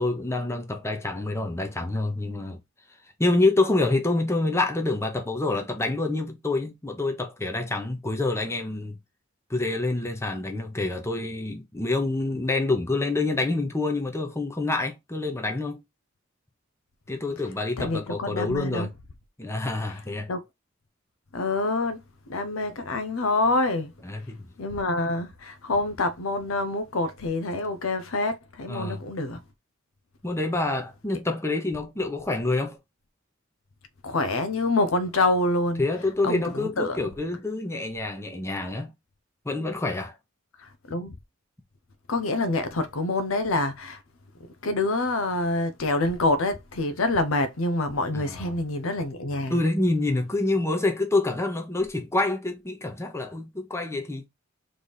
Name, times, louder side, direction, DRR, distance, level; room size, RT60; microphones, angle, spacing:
voice 1, 0.0-2.6 3.2-9.0 9.5-15.8 17.1-18.9 19.4-20.3 24.0-24.4 28.7-29.0 30.2-32.8 35.8-38.9 39.4-40.1 48.1-48.5 49.5-54.2, left 2 dB, 15° left, 0.9 m, -27 dB
voice 2, 17.8-18.9 20.3-20.4 21.3-22.0 22.3-23.9 24.6-29.4 34.0-35.8 36.2-37.0 40.6-41.1 42.1-44.0 44.6-49.6, left 2 dB, 90° left, 0.7 m, -26 dB
3.5 x 3.3 x 4.0 m
head